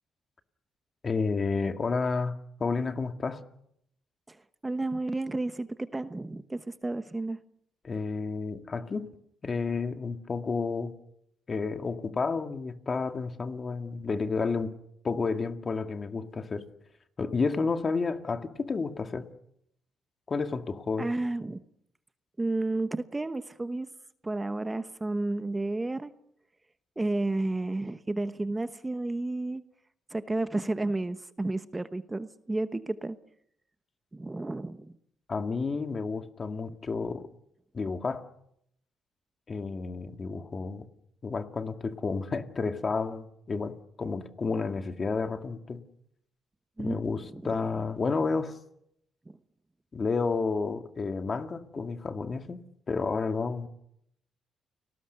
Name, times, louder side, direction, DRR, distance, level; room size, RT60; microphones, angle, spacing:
voice 1, 1.0-3.4 7.8-9.1 9.4-10.9 11.5-14.7 15.0-16.6 17.2-19.3 20.3-21.1 35.3-37.3 37.7-38.2 39.5-40.9 41.2-45.8 46.8-48.6 49.9-52.6 52.9-53.7, left 4 dB, 35° left, 7 dB, 2.1 m, -31 dB
voice 2, 4.6-7.4 21.0-21.6 22.4-23.9 24.2-26.1 27.0-29.6 30.1-33.2 34.1-34.9 46.8-47.0 47.3-47.4 49.3-49.4, right 2 dB, 15° right, 11 dB, 1.1 m, -31 dB
30.0 x 19.5 x 6.8 m, 0.75 s
cardioid pair, 90°, 0 cm